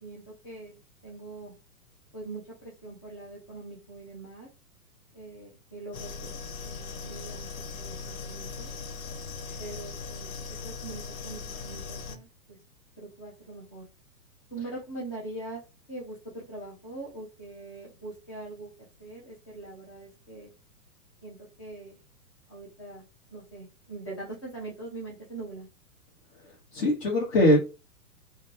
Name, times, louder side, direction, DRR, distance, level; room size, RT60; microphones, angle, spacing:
voice 1, 0.0-1.5 2.1-4.5 5.1-6.4 6.6-7.5 7.8-8.7 9.6-12.6 13.0-13.8 14.5-15.6 15.9-18.7 19.0-20.5 21.2-22.0 22.5-25.7, right 2 dB, 20° left, -4 dB, 0.3 m, -42 dB
sound 1, 5.9-12.2, left 5 dB, 65° left, 0.5 m, -39 dB
voice 2, 26.4-27.6, left 1 dB, 45° left, -4 dB, 0.9 m, -22 dB
2.3 x 2.2 x 3.0 m, 0.29 s
figure-of-eight pair, 110°, 46 cm